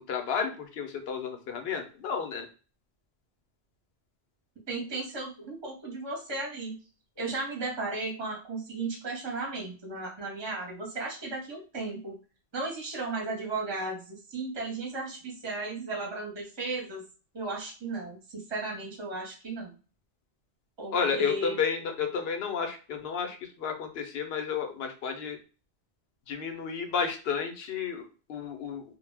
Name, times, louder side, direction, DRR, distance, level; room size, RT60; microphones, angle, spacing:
voice 1, 0.1-2.5 20.9-25.4 26.3-28.8, left 6 dB, 65° left, 6 dB, 0.8 m, -32 dB
voice 2, 4.7-6.8 7.2-12.2 12.5-17.0 17.3-19.7 20.8-21.6, right 3 dB, 25° right, -2 dB, 0.7 m, -35 dB
2.1 x 2.1 x 3.2 m, 0.35 s
omnidirectional pair, 1.1 m